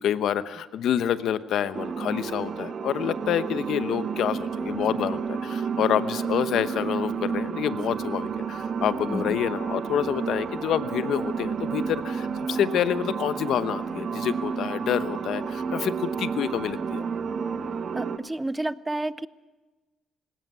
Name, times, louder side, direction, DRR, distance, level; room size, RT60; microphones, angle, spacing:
voice 1, 0.0-17.0, left 10 dB, 75° left, 14 dB, 1.0 m, -27 dB
sound 1, 1.7-18.2, right 6 dB, 55° right, 1.4 m, -31 dB
voice 2, 17.9-19.3, right 1 dB, 10° right, 18 dB, 0.7 m, -30 dB
19.5 x 17.0 x 9.5 m, 1.2 s
cardioid pair, 90°, 0 cm